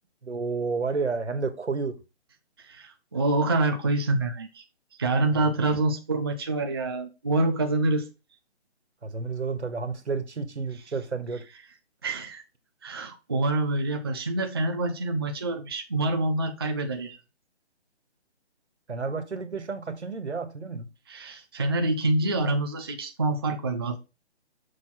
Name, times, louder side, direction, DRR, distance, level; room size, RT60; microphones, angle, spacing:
voice 1, 0.2-2.0 5.3-5.5 9.0-11.5 18.9-20.9, right 4 dB, 85° right, 1.6 m, -31 dB
voice 2, 2.6-4.6 5.0-8.1 12.0-12.4 12.8-17.2 21.1-24.0, right 2 dB, 25° right, 0.4 m, -26 dB
6.1 x 3.9 x 4.4 m
figure-of-eight pair, 150°, 33 cm